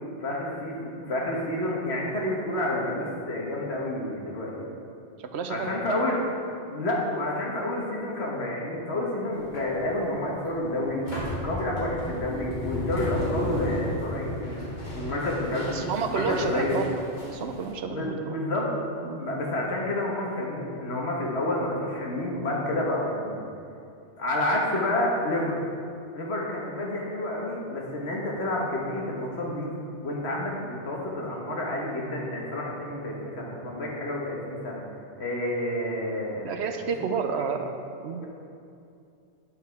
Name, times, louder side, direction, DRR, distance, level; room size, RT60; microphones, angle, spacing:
voice 1, 0.2-4.7 5.5-6.2 6.7-11.0 11.4-14.6 14.9-16.8 17.9-18.7 19.2-23.4 24.2-25.6 26.1-29.7 30.0-34.8 35.2-36.5 37.1-37.5, left 1 dB, 65° left, -2 dB, 1.5 m, -29 dB
voice 2, 5.2-5.7 15.7-16.9 17.3-18.4 19.0-19.2 36.4-38.2, right 6 dB, 70° right, 6 dB, 0.8 m, -30 dB
sound 1, 9.3-17.7, left 1 dB, 40° left, 1.5 m, -34 dB
9.2 x 5.5 x 4.6 m, 2.6 s
omnidirectional pair, 1.2 m